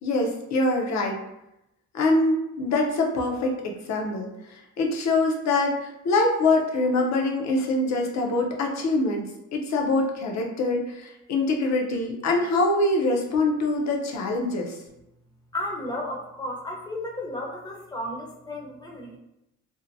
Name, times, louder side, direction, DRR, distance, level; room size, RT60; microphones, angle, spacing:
voice 1, 0.0-1.2 1.9-9.2 9.5-14.8, left 2 dB, 65° left, 0 dB, 0.7 m, -24 dB
voice 2, 15.5-19.2, left 1 dB, 15° left, -1 dB, 0.6 m, -33 dB
2.7 x 2.1 x 2.6 m, 0.86 s
cardioid pair, 90°, 30 cm